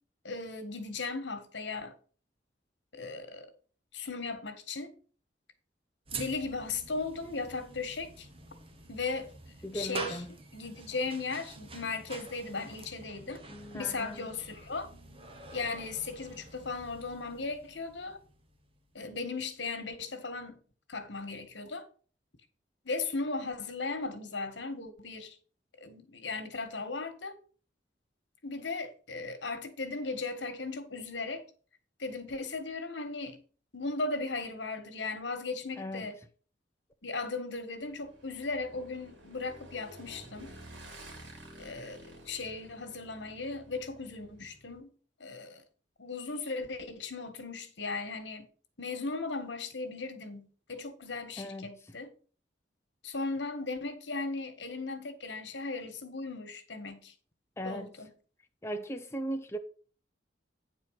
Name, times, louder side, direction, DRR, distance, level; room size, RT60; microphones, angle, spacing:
voice 1, 0.2-2.0 2.9-3.5 3.9-4.9 6.1-8.3 8.9-9.3 9.7-10.2 10.5-13.4 13.7-14.9 15.5-18.2 19.0-20.6 20.9-21.9 22.9-25.4 25.8-27.4 28.4-31.4 32.0-33.4 33.7-36.2 37.0-40.5 41.6-44.9 45.2-45.6 46.0-48.5 48.8-52.1 53.0-57.1 57.6-58.1, left 3 dB, 85° left, 1.6 m, -37 dB
sound 1, 6.1-19.3, right 3 dB, 30° right, 1.3 m, -47 dB
voice 2, 9.6-10.3 13.5-14.3 35.8-36.1 51.4-51.7 57.6-57.9 58.6-59.6, equal, 15° left, 0.7 m, -38 dB
Motorcycle / Engine, 37.8-44.8, right 1 dB, 85° right, 3.0 m, -51 dB
9.5 x 4.5 x 6.4 m
head